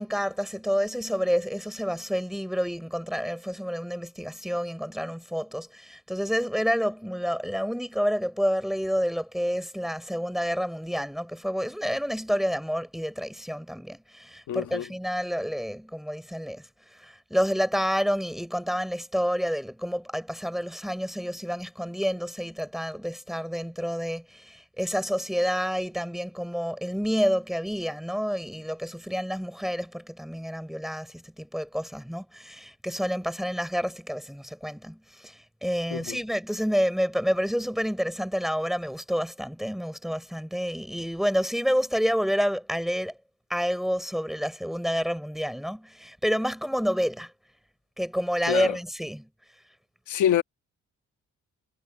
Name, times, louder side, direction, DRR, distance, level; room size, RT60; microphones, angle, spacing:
voice 1, 0.0-43.2 43.5-47.3 48.0-49.3, equal, ahead, 4.4 m, -29 dB
voice 2, 14.5-14.8 35.9-36.2 48.5-48.7 50.1-50.4, left 10 dB, 75° left, 1.5 m, -25 dB
cardioid pair, 90°, 30 cm